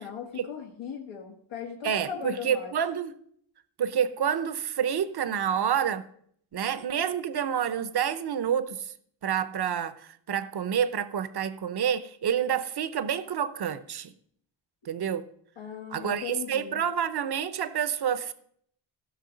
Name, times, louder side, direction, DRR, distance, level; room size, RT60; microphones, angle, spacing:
voice 1, 0.0-2.7 15.6-16.8, left 7 dB, 85° left, 1.5 m, -38 dB
voice 2, 1.8-3.1 3.8-6.1 6.5-8.9 9.2-10.0 10.3-14.1 14.9-15.3 15.9-18.3, right 8 dB, 55° right, 0.8 m, -28 dB
15.5 x 6.3 x 5.1 m
wide cardioid pair, 125°, 48 cm